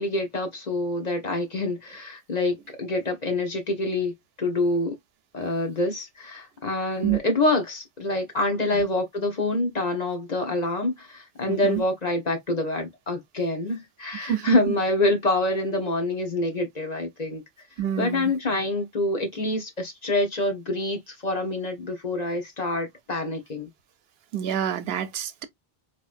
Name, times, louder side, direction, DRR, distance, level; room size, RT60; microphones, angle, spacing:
voice 1, 0.0-4.1 4.4-5.0 5.3-17.4 18.0-23.7, left 2 dB, 45° left, 1.2 m, -26 dB
voice 2, 11.5-11.8 14.2-14.6 17.8-18.3 24.3-25.4, right 10 dB, 80° right, 0.9 m, -27 dB
4.0 x 3.0 x 2.5 m
omnidirectional pair, 1.0 m